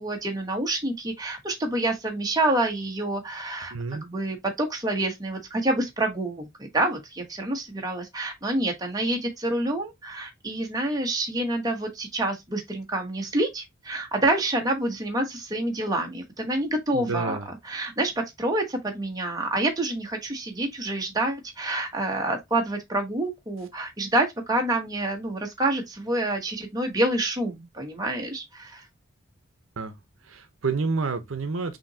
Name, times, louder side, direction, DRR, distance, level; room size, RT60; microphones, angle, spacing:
voice 1, 0.0-28.9, right 1 dB, 20° right, 0.9 m, -27 dB
voice 2, 3.7-4.0 16.9-17.5 29.8-29.9 30.3-31.8, right 4 dB, 75° right, 0.8 m, -29 dB
5.8 x 2.9 x 2.7 m
head